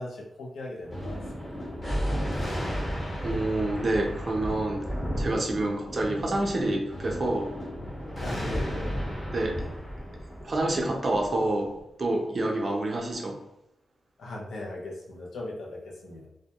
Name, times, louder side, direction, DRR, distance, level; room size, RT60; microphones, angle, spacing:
voice 1, 0.0-1.6 8.2-9.0 14.2-16.3, left 1 dB, 80° left, -1 dB, 0.5 m, -38 dB
Thunder, 0.9-11.7, equal, 30° left, 1.1 m, -33 dB
voice 2, 3.2-4.8 5.2-7.5 9.3-9.6 10.4-11.7 12.0-13.4, right 2 dB, 45° right, 0 dB, 0.5 m, -27 dB
2.1 x 2.1 x 2.8 m, 0.82 s
cardioid pair, 85°, 0 cm